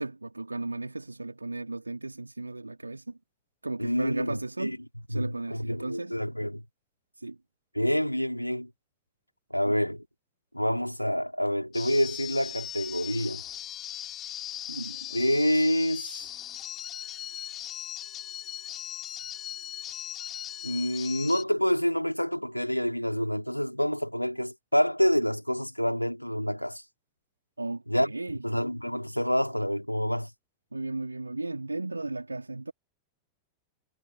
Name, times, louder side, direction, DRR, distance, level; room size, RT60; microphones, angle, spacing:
voice 1, 0.0-3.1 3.6-4.7 5.1-6.2 7.2-7.4 14.7-15.2 27.6-28.4 30.7-32.7, right 2 dB, 85° right, 3.5 m, -35 dB
voice 2, 3.8-4.8 5.1-6.6 7.7-8.7 9.5-10.0 10.5-13.4 15.1-16.3 20.6-26.8 27.9-28.1 28.4-30.3, equal, 90° left, 2.7 m, -27 dB
sound 1, 11.7-21.4, left 12 dB, 30° left, 5.1 m, -39 dB
figure-of-eight pair, 90°, 0 cm